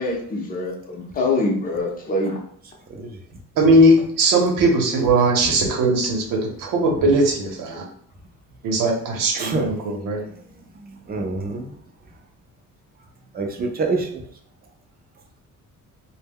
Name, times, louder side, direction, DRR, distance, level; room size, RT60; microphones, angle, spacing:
voice 1, 0.0-2.3, left 2 dB, 25° left, -1 dB, 0.6 m, -24 dB
voice 2, 3.6-7.8 8.6-10.2, right 1 dB, 75° right, 1 dB, 0.8 m, -19 dB
voice 3, 9.4-9.7 11.1-11.7 13.3-14.2, right 3 dB, 30° right, 2 dB, 0.4 m, -25 dB
2.1 x 2.1 x 3.5 m, 0.63 s
cardioid pair, 155°, 33 cm